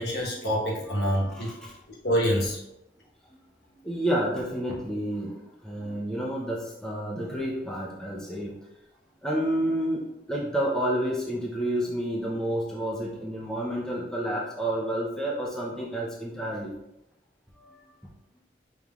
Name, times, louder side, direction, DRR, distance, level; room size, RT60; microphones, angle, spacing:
voice 1, 0.0-1.5 2.0-2.6, equal, 65° left, -2 dB, 1.1 m, -26 dB
voice 2, 0.9-1.7 3.8-5.4 5.6-8.5 9.2-10.0 10.3-16.7 17.6-17.8, right 1 dB, 5° left, -5 dB, 0.6 m, -30 dB
5.4 x 3.1 x 2.4 m, 0.86 s
head